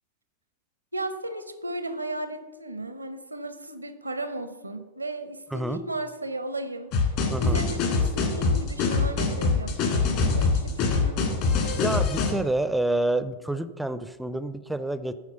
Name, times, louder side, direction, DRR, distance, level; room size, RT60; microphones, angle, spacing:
voice 1, 0.9-6.9 7.4-11.5, right 2 dB, 80° right, 11 dB, 0.7 m, -35 dB
sound 1, 6.9-12.3, left 4 dB, 45° left, 1.9 m, -24 dB
voice 2, 7.3-7.6 11.7-15.1, right 1 dB, 5° right, 13 dB, 0.5 m, -28 dB
9.3 x 4.7 x 6.7 m, 1.2 s
figure-of-eight pair, 90°, 0 cm